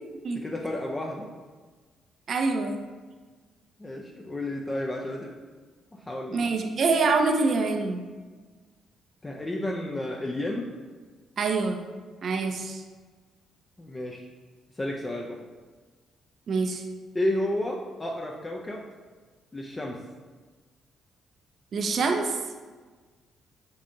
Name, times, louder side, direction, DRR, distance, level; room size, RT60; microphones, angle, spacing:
voice 1, 0.3-1.3 3.8-5.3 5.9-6.5 9.2-10.7 13.8-14.3 14.7-15.4 17.1-18.9 19.5-20.0, left 1 dB, 20° left, -1 dB, 0.4 m, -31 dB
voice 2, 2.3-2.8 6.3-8.0 11.4-11.8 12.2-12.8 16.5-16.8 21.7-22.4, right 4 dB, 55° right, 4 dB, 0.4 m, -25 dB
6.6 x 2.7 x 2.6 m, 1.4 s
cardioid pair, 90°, 0 cm